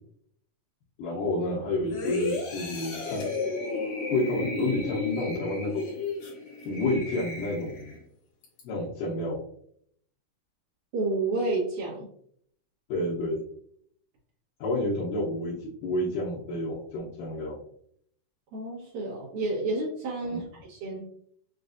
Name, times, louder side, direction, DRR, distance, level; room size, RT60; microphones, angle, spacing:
voice 1, 1.0-3.2 4.1-5.8 6.7-8.0 8.6-9.4 12.9-13.4 14.6-17.6 20.2-20.4, left 2 dB, 80° left, -6 dB, 2.5 m, -29 dB
sound 1, 1.9-8.0 8.4-8.6, left 3 dB, 65° left, 2.5 m, -33 dB
voice 2, 10.9-12.1 18.5-21.0, right 2 dB, 75° right, -8 dB, 2.6 m, -30 dB
6.3 x 2.4 x 2.5 m, 0.65 s
omnidirectional pair, 3.8 m